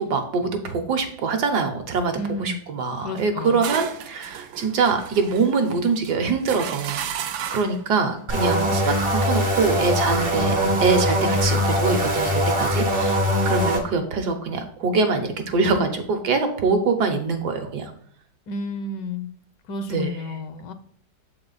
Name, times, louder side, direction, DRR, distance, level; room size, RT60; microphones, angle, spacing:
voice 1, 0.0-7.0 7.5-13.2 13.4-17.9 19.9-20.2, right 4 dB, 65° right, 5 dB, 1.4 m, -24 dB
voice 2, 2.2-2.6 3.0-3.6 18.5-19.3 19.7-20.7, left 2 dB, 70° left, 10 dB, 1.3 m, -31 dB
sound 1, 3.2-7.9, right 9 dB, 85° right, 0.7 m, -34 dB
sound 2, 8.3-13.8, equal, 30° right, 0.6 m, -22 dB
7.1 x 4.4 x 3.9 m, 0.64 s
omnidirectional pair, 2.0 m